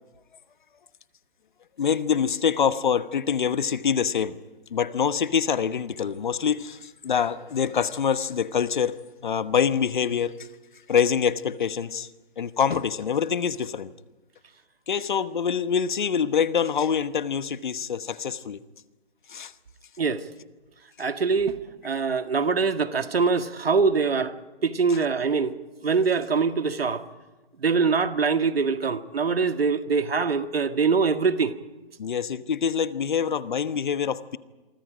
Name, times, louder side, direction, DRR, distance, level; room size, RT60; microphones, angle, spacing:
voice 1, 1.8-4.4 4.7-9.0 9.2-10.5 10.9-12.1 12.4-13.9 14.9-18.6 19.3-19.5 32.0-34.4, left 7 dB, 50° left, 1.2 m, -25 dB
voice 2, 21.0-21.6 21.8-24.4 24.6-25.6 25.8-27.0 27.6-31.5, right 5 dB, 70° right, 1.8 m, -23 dB
28.0 x 24.0 x 5.1 m
hypercardioid pair, 160°, 31 cm